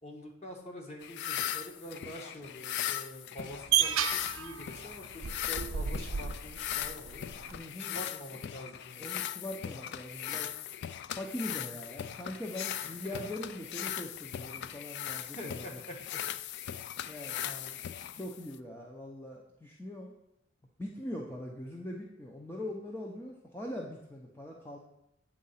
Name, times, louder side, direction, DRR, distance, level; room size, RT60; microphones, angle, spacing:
voice 1, 0.0-7.3 7.8-9.1 12.8-13.2 15.2-16.2 17.4-17.8, equal, 35° left, 1 dB, 1.3 m, -46 dB
sound 1, 1.0-18.6, left 11 dB, 55° left, 0.3 m, -39 dB
sound 2, 3.4-7.6, right 9 dB, 70° right, 0.5 m, -33 dB
voice 2, 7.5-8.2 9.0-10.6 11.1-15.7 17.1-17.5 18.1-20.1 20.8-24.8, left 1 dB, 10° left, -1 dB, 0.6 m, -41 dB
8.6 x 3.7 x 5.6 m, 0.84 s
head